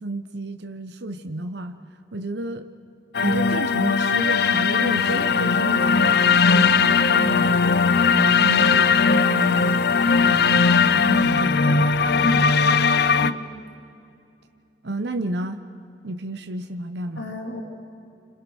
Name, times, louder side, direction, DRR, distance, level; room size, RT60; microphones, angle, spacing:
voice 1, 0.0-1.8 2.1-2.7 3.2-7.6 8.1-11.9 12.2-12.4 14.8-15.6 16.0-17.4, right 1 dB, 65° right, 7 dB, 1.0 m, -31 dB
sound 1, 3.1-13.3, left 5 dB, 60° left, 0.7 m, -19 dB
voice 2, 12.2-12.7 13.2-13.5 17.2-17.6, left 1 dB, 75° left, 2 dB, 2.8 m, -32 dB
30.0 x 26.5 x 6.3 m, 2.7 s
head